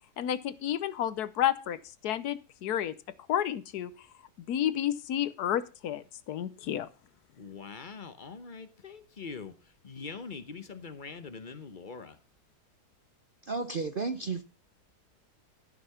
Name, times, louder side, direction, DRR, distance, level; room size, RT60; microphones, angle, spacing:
voice 1, 0.2-1.8 2.0-2.9 3.3-3.9 4.5-6.9, left 10 dB, 75° left, 1.2 m, -30 dB
voice 2, 7.4-9.5 9.8-12.2, left 5 dB, 35° left, 0.9 m, -43 dB
voice 3, 13.4-14.4, right 4 dB, 50° right, 0.6 m, -32 dB
13.5 x 6.1 x 5.6 m
omnidirectional pair, 1.8 m